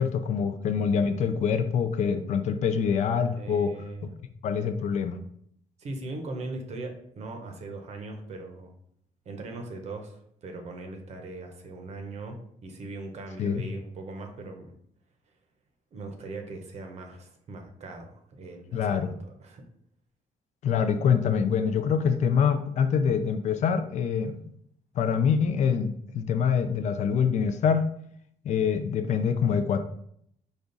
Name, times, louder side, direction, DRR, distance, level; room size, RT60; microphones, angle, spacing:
voice 1, 0.0-3.7 4.4-5.2 13.4-13.6 18.7-19.1 20.6-24.4 25.0-27.9 28.4-29.8, left 6 dB, 50° left, 9 dB, 0.4 m, -25 dB
voice 2, 3.3-4.1 5.8-8.7 9.2-14.8 15.9-19.7, right 2 dB, 45° right, 4 dB, 0.8 m, -40 dB
5.1 x 2.4 x 3.9 m, 0.68 s
cardioid pair, 180°, 15 cm